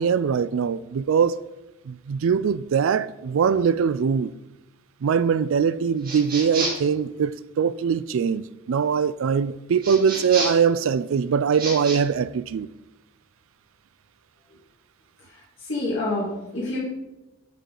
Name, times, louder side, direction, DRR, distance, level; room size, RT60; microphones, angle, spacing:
voice 1, 0.0-1.4 1.9-4.3 5.0-12.7, right 6 dB, 65° right, 0.3 m, -22 dB
sound 1, 6.0-6.9 9.8-10.7 11.5-12.0, right 2 dB, 40° right, 2.1 m, -29 dB
voice 2, 15.6-16.8, left 2 dB, 60° left, 2.1 m, -27 dB
11.5 x 4.7 x 3.8 m
head